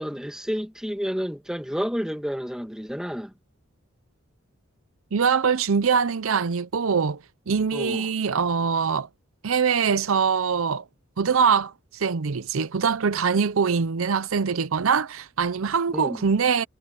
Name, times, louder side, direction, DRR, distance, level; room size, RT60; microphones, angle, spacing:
voice 1, 0.0-3.3 7.7-8.1 15.9-16.2, equal, 5° right, 2.0 m, -30 dB
voice 2, 5.1-9.1 9.4-10.8 11.2-16.6, right 6 dB, 75° right, 0.6 m, -23 dB
head